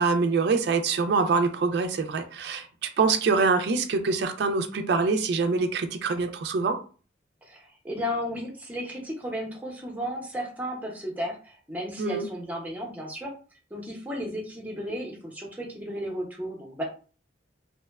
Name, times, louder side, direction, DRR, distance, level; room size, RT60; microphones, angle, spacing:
voice 1, 0.0-6.8 12.0-12.3, right 4 dB, 55° right, 7 dB, 0.3 m, -25 dB
voice 2, 7.4-13.3 13.7-16.8, equal, 10° right, -1 dB, 0.5 m, -34 dB
2.8 x 2.1 x 2.2 m, 0.38 s
head